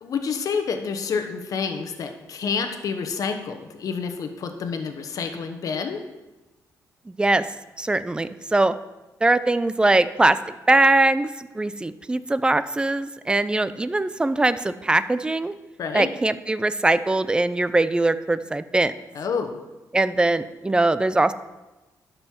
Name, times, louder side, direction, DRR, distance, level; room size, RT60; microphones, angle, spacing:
voice 1, 0.0-6.0 15.8-16.1 19.1-19.6, left 5 dB, 60° left, 6 dB, 1.0 m, -28 dB
voice 2, 7.1-7.5 7.8-8.7 9.2-10.4 10.7-15.5 15.9-18.9 19.9-21.3, right 2 dB, 15° right, 14 dB, 0.4 m, -21 dB
12.0 x 5.5 x 4.4 m, 1.1 s
cardioid pair, 100°, 7 cm